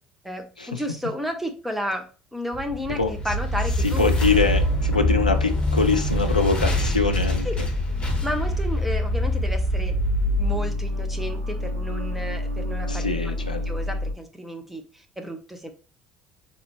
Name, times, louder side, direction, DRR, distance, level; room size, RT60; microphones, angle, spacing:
voice 1, 0.2-4.1 7.4-7.5 8.2-10.0 10.4-15.7, equal, 5° right, 0.9 m, -32 dB
sound 1, 2.5-11.7, equal, 25° left, 1.3 m, -25 dB
voice 2, 3.8-7.5 12.9-13.6, left 4 dB, 85° left, 0.4 m, -24 dB
sound 2, 4.2-14.1, left 1 dB, 90° right, 1.8 m, -29 dB
4.1 x 3.3 x 3.1 m
figure-of-eight pair, 55°, 4 cm